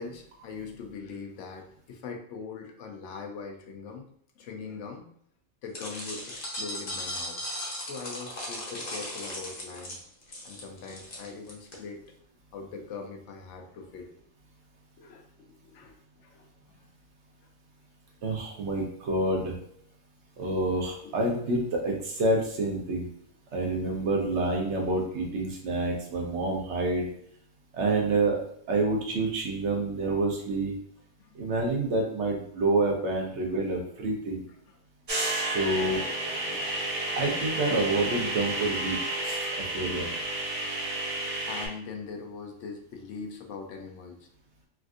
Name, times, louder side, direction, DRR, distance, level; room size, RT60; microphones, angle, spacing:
voice 1, 0.0-4.1 4.4-5.1 5.6-7.4 7.7-10.0 10.4-12.0 12.5-14.2 15.0-15.3 15.6-16.8 21.0-21.2 22.9-23.0 31.2-31.5 34.5-34.8 36.5-36.7 39.1-39.6 41.5-44.3, left 4 dB, 75° left, 3 dB, 0.9 m, -42 dB
sound 1, 5.7-11.8, left 1 dB, 45° left, 0.8 m, -37 dB
voice 2, 18.2-19.5 20.4-23.1 23.5-27.1 27.7-28.4 28.7-30.7 31.3-34.4 35.4-36.0 37.2-40.1, right 2 dB, 70° right, 0 dB, 1.0 m, -28 dB
sound 2, 35.1-41.7, right 1 dB, 35° right, 0.6 m, -31 dB
3.5 x 2.4 x 2.4 m, 0.67 s
omnidirectional pair, 1.3 m